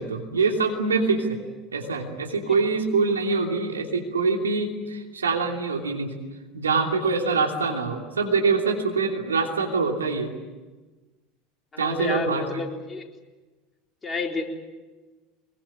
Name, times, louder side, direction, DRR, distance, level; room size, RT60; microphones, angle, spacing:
voice 1, 0.0-1.4 1.7-6.1 6.5-10.3 11.8-12.4, right 4 dB, 85° right, 2 dB, 2.9 m, -24 dB
voice 2, 11.7-13.1 14.0-14.4, left 3 dB, 25° left, 2 dB, 3.9 m, -30 dB
23.5 x 22.5 x 8.8 m, 1.2 s
hypercardioid pair, 75°, 0 cm